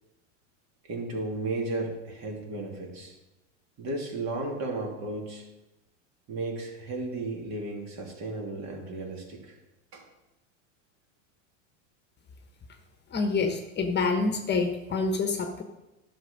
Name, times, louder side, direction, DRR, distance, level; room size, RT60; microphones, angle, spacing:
voice 1, 0.9-3.1 3.8-5.5 6.3-9.6 9.9-10.0, right 2 dB, 45° right, 0 dB, 3.1 m, -34 dB
voice 2, 13.1-15.6, left 4 dB, 25° left, 5 dB, 1.2 m, -27 dB
11.0 x 6.8 x 5.2 m, 1.0 s
hypercardioid pair, 100°, 39 cm